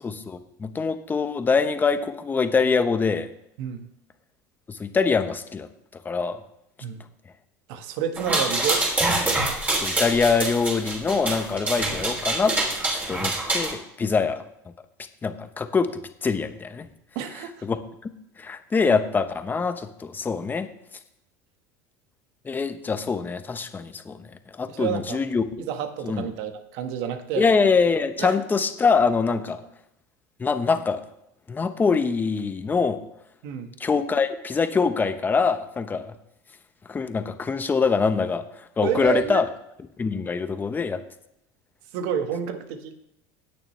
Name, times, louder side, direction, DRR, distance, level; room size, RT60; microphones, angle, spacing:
voice 1, 0.0-3.3 4.7-5.7 6.0-6.4 9.7-12.5 12.8-14.4 15.2-16.9 17.6-18.1 18.4-20.7 22.4-24.2 24.5-25.4 26.0-26.3 27.4-29.6 30.4-31.0 31.5-33.0 33.8-36.1 36.9-39.5 40.0-41.0, left 5 dB, 20° left, 9 dB, 1.0 m, -24 dB
voice 2, 7.7-8.8 17.1-17.6 24.7-25.2 25.7-27.5 28.2-28.4 33.4-33.8 38.8-39.4 41.9-42.9, right 9 dB, 70° right, 7 dB, 1.5 m, -29 dB
sound 1, 8.2-13.7, right 2 dB, 15° right, 3.2 m, -25 dB
18.5 x 6.7 x 3.3 m, 0.79 s
supercardioid pair, 115°, 9 cm